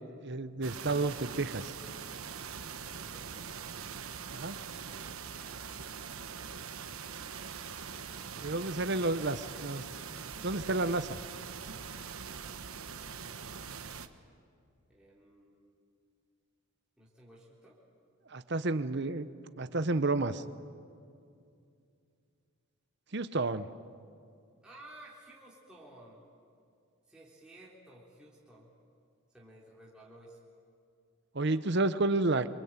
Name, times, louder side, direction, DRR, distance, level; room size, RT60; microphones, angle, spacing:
voice 1, 0.0-1.7 4.3-4.6 8.4-9.9 10.2-11.2 18.3-19.3 19.6-20.4 23.1-23.7 31.3-32.5, right 2 dB, 50° right, 11 dB, 0.9 m, -31 dB
sound 1, 0.6-14.1, right 6 dB, 75° right, 1.2 m, -43 dB
voice 2, 2.9-3.6 8.0-8.5 14.9-15.9 17.0-17.8 24.6-26.2 27.1-28.7 29.3-30.4, right 1 dB, 5° right, -6 dB, 3.6 m, -56 dB
27.5 x 24.0 x 9.0 m, 2.4 s
head